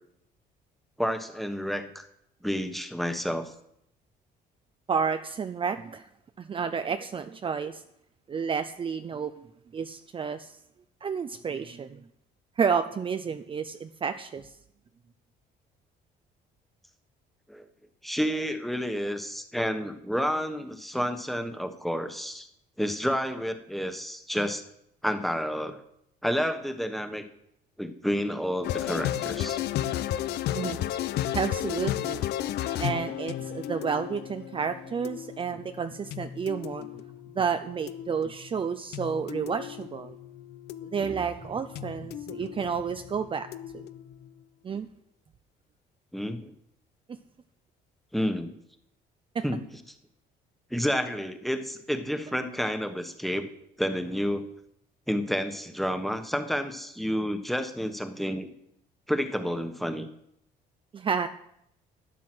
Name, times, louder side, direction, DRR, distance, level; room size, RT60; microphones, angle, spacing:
voice 1, 1.0-2.1 2.4-3.5 17.5-17.6 18.0-22.5 22.8-24.6 25.0-25.8 26.2-27.3 27.8-29.6 46.1-46.5 48.1-48.5 49.4-49.6 50.7-53.5 53.8-54.4 55.1-58.5 59.1-60.1, equal, ahead, 8 dB, 1.3 m, -30 dB
voice 2, 4.9-6.1 6.4-7.8 8.3-9.5 9.7-10.6 11.0-12.0 12.6-14.5 30.5-30.8 31.3-32.2 32.8-37.0 37.3-40.2 40.9-43.5 43.7-43.8 44.6-44.9 47.1-47.2 49.3-49.4 60.9-61.3, right 6 dB, 30° right, 10 dB, 0.6 m, -30 dB
sound 1, 28.6-44.4, left 12 dB, 75° left, 0.8 m, -34 dB
12.0 x 9.3 x 6.2 m, 0.76 s
cardioid pair, 110°, 17 cm